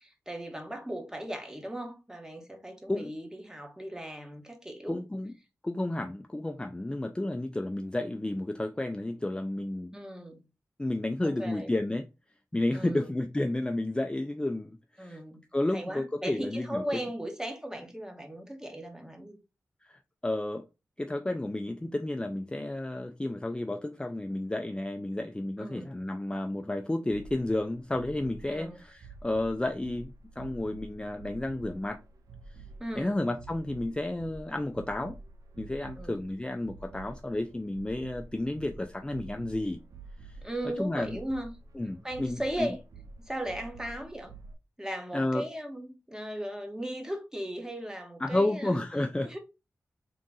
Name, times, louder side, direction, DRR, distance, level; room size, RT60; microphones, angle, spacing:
voice 1, 0.0-5.0 9.9-10.4 11.2-11.7 12.7-13.1 15.0-15.4 15.7-19.4 25.6-25.9 28.5-28.8 32.8-33.2 36.0-36.2 40.4-41.5 42.0-42.8 43.2-44.3 44.8-48.7 49.2-49.4, right 1 dB, 10° right, 1.3 m, -37 dB
voice 2, 4.9-5.3 5.6-9.9 10.8-12.1 12.5-15.2 15.5-16.8 19.8-20.6 21.0-32.0 33.0-35.2 35.6-39.8 40.3-40.4 40.8-41.2 41.8-42.7 45.1-45.4 48.2-49.3, left 1 dB, 15° left, 0.5 m, -31 dB
sound 1, 27.1-44.5, right 3 dB, 85° right, 0.6 m, -49 dB
3.7 x 2.5 x 3.8 m
cardioid pair, 40°, 6 cm